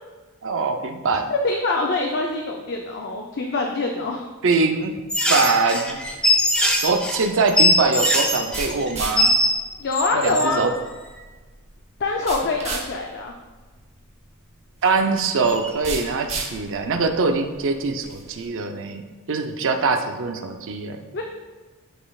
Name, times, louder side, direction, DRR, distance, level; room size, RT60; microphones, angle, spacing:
voice 1, 0.4-1.3 4.4-6.0 6.7-9.3 10.1-10.7 14.8-21.0, right 4 dB, 60° right, 6 dB, 0.5 m, -23 dB
voice 2, 1.3-4.3 9.8-10.6 12.0-13.3 21.1-21.2, left 3 dB, 50° left, 1 dB, 0.5 m, -24 dB
sound 1, 5.1-9.6 9.9-10.7 15.5-15.7, left 1 dB, 5° left, 0.6 m, -21 dB
sound 2, 5.9-18.5, right 3 dB, 30° right, 1.0 m, -37 dB
11.0 x 4.2 x 2.4 m, 1.3 s
head